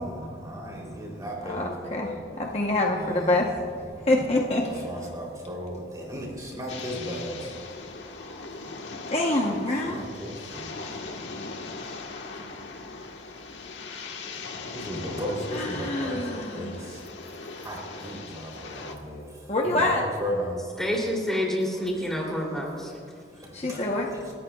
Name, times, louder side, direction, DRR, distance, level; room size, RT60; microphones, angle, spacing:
voice 1, 0.0-2.5 2.9-3.4 3.9-4.1 4.6-7.5 8.6-8.7 9.4-12.8 13.1-13.3 13.7-20.6 21.7-22.2 22.8-23.0 23.3-23.9 24.1-24.3, equal, 20° right, -2 dB, 3.3 m, -37 dB
voice 2, 1.4-3.6 4.1-4.9 9.1-10.0 15.5-16.8 19.5-20.0 23.5-24.1, left 2 dB, 35° left, -1 dB, 1.0 m, -26 dB
sound 1, 6.7-18.9, left 3 dB, 85° left, 1.5 m, -39 dB
voice 3, 20.8-22.9, equal, 5° left, -2 dB, 3.0 m, -28 dB
29.0 x 14.0 x 2.4 m, 2.4 s
head